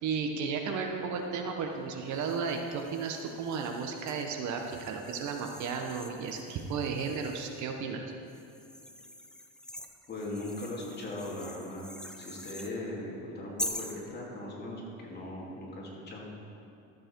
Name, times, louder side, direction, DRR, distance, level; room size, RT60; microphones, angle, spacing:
voice 1, 0.0-8.0, right 5 dB, 55° right, 3 dB, 1.0 m, -34 dB
sound 1, 2.1-7.7 8.3-12.7 13.6-14.0, left 1 dB, ahead, 0.4 m, -44 dB
voice 2, 10.1-11.8 12.2-16.3, left 1 dB, 30° left, -4 dB, 2.6 m, -39 dB
13.0 x 7.6 x 4.5 m, 2.6 s
cardioid pair, 125°, 36 cm